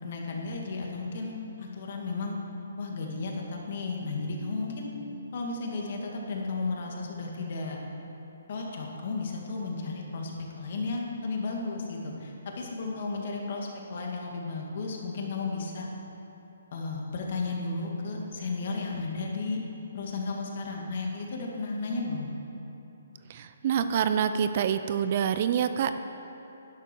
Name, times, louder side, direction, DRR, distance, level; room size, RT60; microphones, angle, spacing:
voice 1, 0.0-2.4 2.8-4.9 5.3-7.8 8.5-15.9 16.7-19.6 19.9-22.3, left 3 dB, 50° left, -1 dB, 2.2 m, -34 dB
voice 2, 23.3-26.0, right 8 dB, 40° right, 10 dB, 0.5 m, -26 dB
12.0 x 11.0 x 4.6 m, 3.0 s
hypercardioid pair, 155°, 0 cm